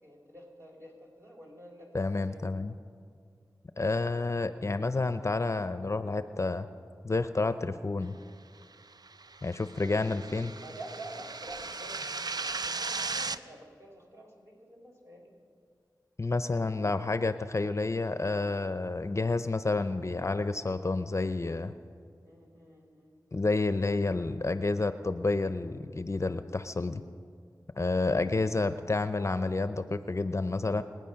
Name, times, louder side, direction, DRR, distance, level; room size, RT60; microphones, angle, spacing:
voice 1, 0.0-2.5 10.6-15.3 22.2-23.2, right 1 dB, 40° right, -1 dB, 4.2 m, -48 dB
voice 2, 1.9-2.7 3.8-6.7 7.0-8.2 9.4-10.5 16.2-21.7 23.3-27.0 27.8-30.8, left 3 dB, 40° left, 11 dB, 0.6 m, -29 dB
sound 1, 8.9-13.4, right 4 dB, 65° right, 0.5 m, -37 dB
26.0 x 9.3 x 5.7 m, 2.2 s
cardioid pair, 45°, 8 cm